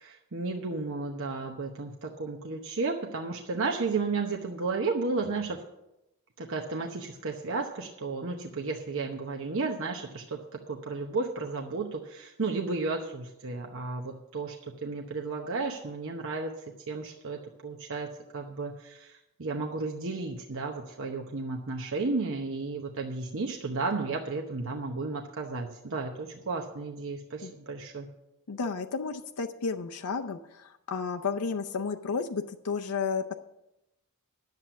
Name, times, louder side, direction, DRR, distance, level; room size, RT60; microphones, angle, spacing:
voice 1, 0.0-5.6 6.4-10.4 10.7-28.1, right 3 dB, 60° right, 1 dB, 0.9 m, -33 dB
voice 2, 28.5-33.3, left 5 dB, 80° left, 6 dB, 0.6 m, -32 dB
10.5 x 7.6 x 7.0 m, 0.90 s
head